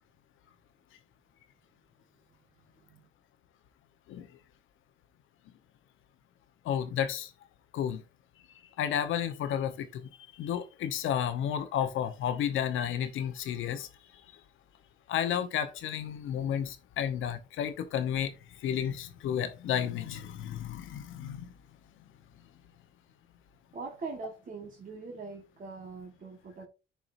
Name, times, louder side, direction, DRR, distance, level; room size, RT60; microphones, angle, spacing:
voice 1, 6.6-7.3 7.7-8.0 8.8-10.1 10.4-13.9 15.1-18.3 18.6-21.5, left 9 dB, 80° left, 1.0 m, -32 dB
voice 2, 23.7-26.7, right 4 dB, 45° right, 1.4 m, -42 dB
11.0 x 4.7 x 2.6 m
cardioid pair, 90°, 20 cm